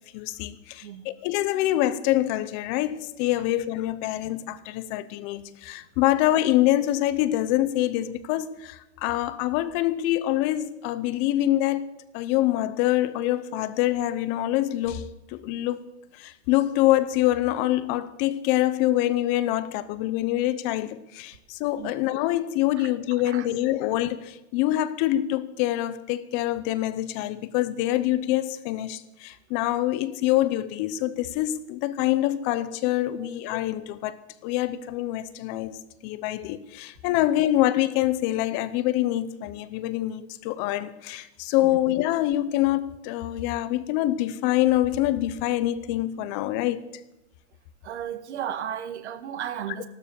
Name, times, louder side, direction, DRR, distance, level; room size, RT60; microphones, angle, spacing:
voice 1, 0.1-11.8 12.1-15.8 16.1-35.8 36.0-46.8, left 14 dB, 30° left, 0.7 m, -25 dB
voice 2, 47.8-49.9, right 9 dB, 75° right, 1.5 m, -34 dB
14.5 x 12.5 x 6.9 m
supercardioid pair, 155°, 34 cm